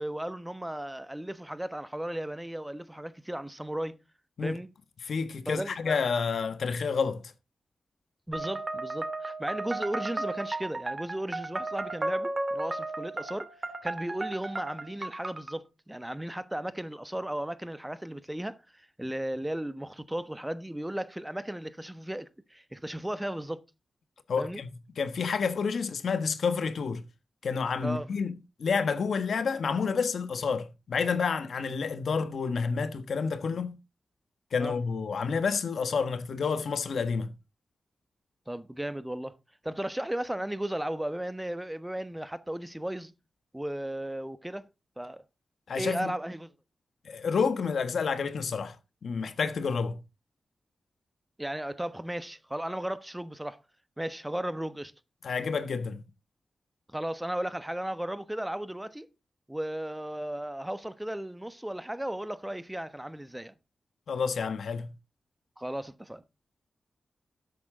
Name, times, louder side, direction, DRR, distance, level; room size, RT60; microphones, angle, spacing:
voice 1, 0.0-4.0 4.4-4.7 5.5-6.0 8.3-13.5 13.8-23.6 24.4-24.6 27.8-28.1 34.6-34.8 38.5-39.4 39.6-43.1 43.5-44.7 45.0-45.2 45.7-46.5 51.4-53.6 54.0-54.9 56.9-59.1 59.5-63.5 65.6-66.2, right 1 dB, 10° right, 1.1 m, -35 dB
voice 2, 5.0-7.3 24.3-27.0 27.4-33.8 34.5-37.3 45.7-46.1 47.0-48.8 49.0-50.0 55.2-56.0 64.1-64.9, left 5 dB, 80° left, 1.3 m, -29 dB
sound 1, 8.3-15.5, right 2 dB, 35° right, 2.8 m, -34 dB
12.5 x 8.6 x 3.7 m
cardioid pair, 55°, 0 cm